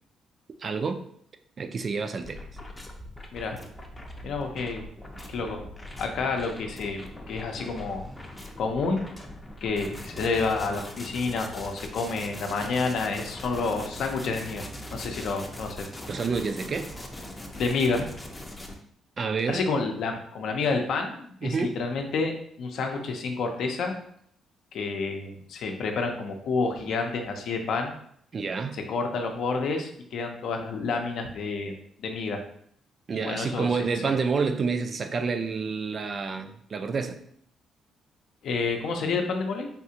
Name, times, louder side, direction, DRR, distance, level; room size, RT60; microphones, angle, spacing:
voice 1, 0.6-1.0 1.6-2.5 16.1-16.9 19.2-19.6 21.4-21.8 28.3-28.8 33.1-37.2, right 5 dB, 45° right, 8 dB, 0.3 m, -28 dB
sound 1, 2.2-18.7, left 1 dB, 15° left, 0.5 m, -41 dB
voice 2, 4.2-4.8 5.3-5.6 6.0-7.0 7.3-8.0 8.6-9.0 9.6-14.6 14.9-15.9 17.5-18.1 19.5-23.9 24.7-27.9 28.9-32.4 33.1-33.7 34.0-34.1 38.4-39.7, left 4 dB, 70° left, 4 dB, 0.5 m, -29 dB
3.5 x 2.4 x 2.8 m, 0.66 s
cardioid pair, 90°, 0 cm